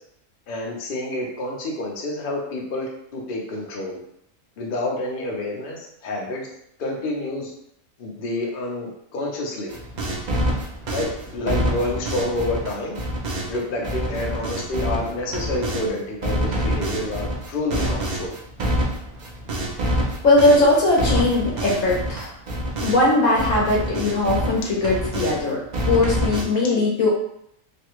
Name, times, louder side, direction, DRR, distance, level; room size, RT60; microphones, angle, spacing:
voice 1, 0.5-4.0 4.6-6.5 6.8-7.5 8.0-9.7 10.9-13.0 13.5-18.4, left 2 dB, 50° left, -1 dB, 0.7 m, -28 dB
sound 1, 9.7-15.9 16.2-23.1 23.4-25.4 25.7-26.4, right 1 dB, 75° right, 0.4 m, -26 dB
voice 2, 20.2-22.3 22.8-27.1, left 2 dB, 65° left, -4 dB, 1.1 m, -19 dB
3.1 x 2.2 x 3.0 m, 0.74 s
omnidirectional pair, 1.5 m